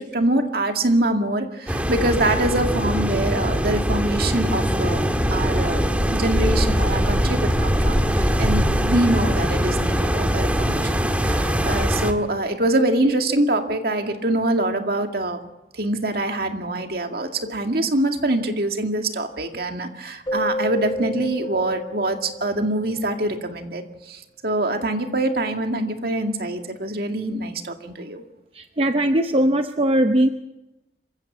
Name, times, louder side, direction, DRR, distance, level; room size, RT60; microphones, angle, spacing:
voice 1, 0.0-5.0 5.3-5.8 6.1-15.4 15.7-28.2, right 1 dB, 60° right, 4 dB, 2.2 m, -24 dB
sound 1, 1.7-12.1, equal, 10° right, 1.7 m, -21 dB
Keyboard (musical), 20.3-23.0, left 1 dB, 25° left, 1.2 m, -30 dB
voice 2, 28.5-30.3, right 1 dB, 30° right, 7 dB, 0.7 m, -19 dB
26.0 x 15.5 x 7.4 m, 0.97 s
head